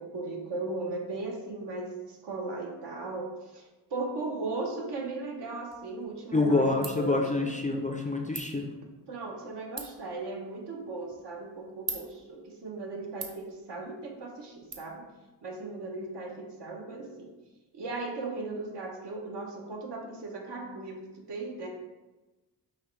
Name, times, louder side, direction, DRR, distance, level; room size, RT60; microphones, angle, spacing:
voice 1, 0.0-3.6 3.9-7.6 9.1-15.1 15.4-17.3 17.7-21.7, right 3 dB, 75° right, 0 dB, 1.0 m, -37 dB
Ratchet pawl, 5.7-14.7, right 4 dB, 40° right, 0.7 m, -46 dB
voice 2, 6.3-8.7, left 2 dB, 20° left, 2 dB, 0.3 m, -27 dB
5.4 x 3.0 x 3.2 m, 1.1 s
wide cardioid pair, 100°, 42 cm